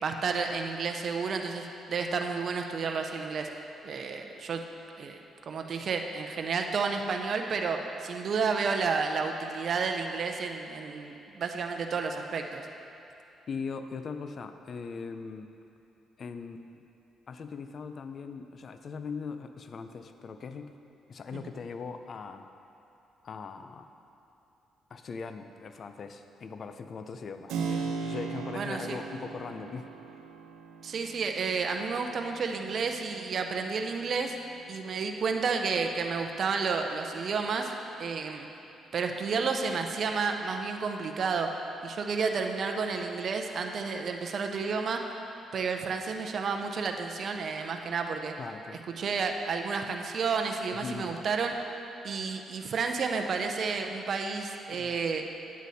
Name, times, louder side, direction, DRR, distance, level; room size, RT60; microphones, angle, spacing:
voice 1, 0.0-3.5 3.8-4.6 5.0-5.2 5.5-12.7 21.3-21.4 28.5-29.0 30.8-34.4 34.7-37.7 38.0-38.5 38.9-41.5 41.8-45.0 45.5-48.3 49.0-51.5 52.0-55.2, right 5 dB, 55° right, 4 dB, 0.6 m, -31 dB
voice 2, 13.5-15.5 16.2-16.8 17.3-20.7 21.1-22.5 23.2-23.9 24.9-29.9 48.4-48.9 50.8-51.2 54.7-54.9, left 5 dB, 50° left, 8 dB, 0.5 m, -40 dB
Keyboard (musical), 27.5-36.0, right 5 dB, 85° right, 0.9 m, -39 dB
9.4 x 8.2 x 4.2 m, 2.8 s
cardioid pair, 90°, 0 cm